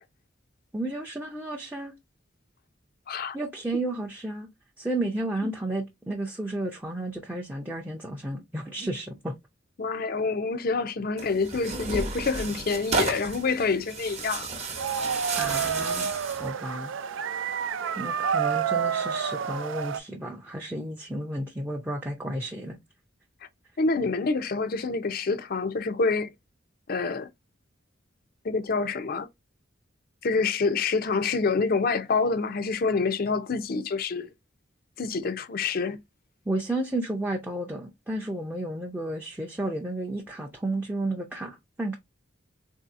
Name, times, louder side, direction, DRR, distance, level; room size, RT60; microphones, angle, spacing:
voice 1, 0.7-2.0 3.3-4.5 4.8-9.3 15.3-16.9 18.0-22.8 36.5-42.0, right 1 dB, 10° right, 0.5 m, -32 dB
voice 2, 9.8-14.5 23.8-26.3 26.9-27.3 28.4-29.3 30.2-34.3 35.0-36.0, left 4 dB, 50° left, 0.5 m, -27 dB
Tearing, 11.2-16.5, right 4 dB, 35° right, 0.8 m, -32 dB
sound 1, 14.8-20.0, right 7 dB, 80° right, 0.4 m, -29 dB
3.8 x 2.7 x 2.4 m
head